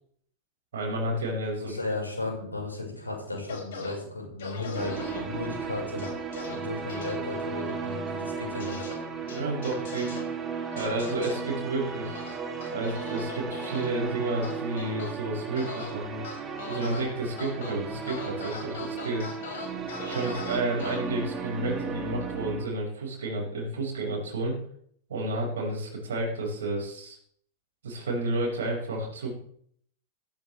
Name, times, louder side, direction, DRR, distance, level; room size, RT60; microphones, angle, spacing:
voice 1, 0.7-1.8 9.2-10.2 10.7-12.2 12.7-16.2 16.7-19.3 20.0-24.6 25.1-27.2 27.8-29.3, right 2 dB, 60° right, -2 dB, 6.3 m, -31 dB
voice 2, 1.6-6.0 6.5-8.9, left 2 dB, 80° left, 0 dB, 5.8 m, -35 dB
sound 1, 3.5-4.0 4.4-5.2 6.0-6.6 6.9-7.1 8.6-8.9 9.3-10.2 10.8-11.3 12.1-13.9 14.4-15.1 15.6-15.9 16.2-17.0 17.4-17.7 18.1-21.0, left 5 dB, 60° left, 4.8 m, -39 dB
sound 2, 4.8-22.6, right 5 dB, 20° right, 3.0 m, -35 dB
16.0 x 14.5 x 3.6 m, 0.64 s
figure-of-eight pair, 90°, 0 cm